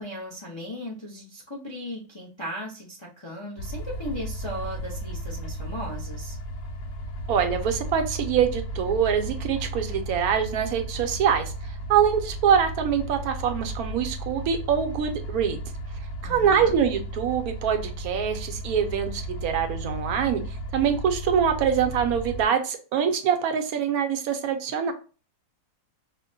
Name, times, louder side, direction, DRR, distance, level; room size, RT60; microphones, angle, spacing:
voice 1, 0.0-6.4 16.2-16.7, equal, 30° left, 0.5 m, -37 dB
sound 1, 3.6-22.5, right 1 dB, 85° left, 1.2 m, -34 dB
voice 2, 7.3-11.5 11.9-15.6 16.2-20.4 20.7-24.9, right 8 dB, 75° right, 1.1 m, -24 dB
4.9 x 2.1 x 2.6 m
omnidirectional pair, 1.6 m